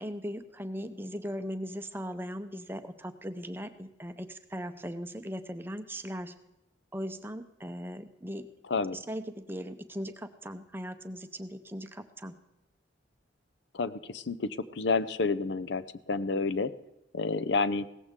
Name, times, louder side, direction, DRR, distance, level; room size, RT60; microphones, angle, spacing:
voice 1, 0.0-6.4 6.9-8.5 8.9-12.4, equal, 10° right, 9 dB, 0.6 m, -39 dB
voice 2, 8.7-9.0 13.7-16.7 17.1-17.9, left 4 dB, 70° left, 15 dB, 0.6 m, -30 dB
17.0 x 14.5 x 3.7 m, 0.95 s
head